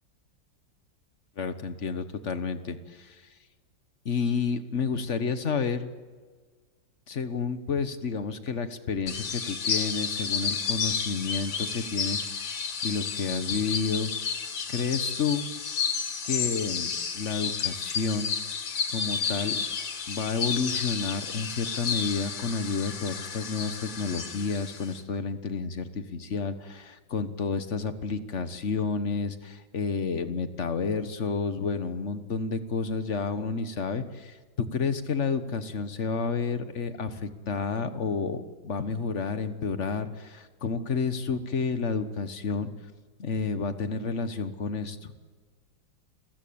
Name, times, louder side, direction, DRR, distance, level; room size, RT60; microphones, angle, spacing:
voice 1, 1.4-3.2 4.0-5.9 7.1-14.1 14.7-15.4 16.2-18.3 18.9-19.6 20.1-42.7 43.2-45.1, left 5 dB, 45° left, 11 dB, 1.4 m, -30 dB
sound 1, 9.1-25.0, left 6 dB, 85° left, 2.4 m, -31 dB
28.5 x 15.5 x 8.8 m, 1.5 s
omnidirectional pair, 2.0 m